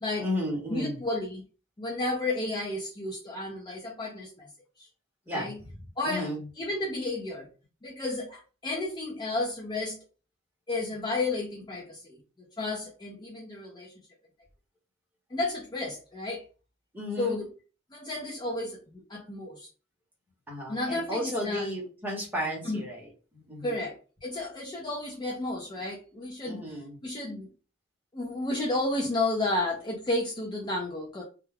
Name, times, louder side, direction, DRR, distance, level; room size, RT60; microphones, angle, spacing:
voice 1, 0.2-1.0 5.3-5.5 6.0-6.4 16.9-17.4 20.5-23.1 23.3-23.7 26.4-27.0, left 1 dB, 10° right, -3 dB, 0.9 m, -33 dB
voice 2, 0.7-1.4 1.8-4.5 4.8-4.9 5.3-5.6 6.0-6.3 6.6-7.5 7.8-10.0 10.7-13.9 15.3-16.5 17.2-17.5 17.9-19.7 20.7-21.7 22.6-22.8 23.6-26.7 27.0-27.5 28.1-31.2, left 2 dB, 20° left, -1 dB, 0.4 m, -32 dB
2.3 x 2.1 x 3.2 m, 0.35 s
head